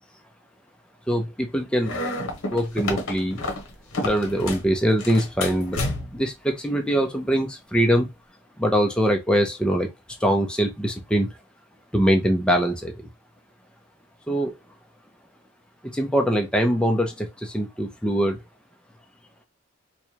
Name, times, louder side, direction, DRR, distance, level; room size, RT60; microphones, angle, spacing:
voice 1, 1.1-2.0 2.5-3.4 4.0-5.8 6.1-8.1 8.6-9.9 10.2-11.3 11.9-12.9 14.3-14.5 15.9-18.4, equal, 5° left, 0.6 m, -22 dB
sound 1, 1.8-4.7 5.0-6.3, left 2 dB, 60° left, 1.0 m, -30 dB
4.6 x 2.2 x 2.8 m
head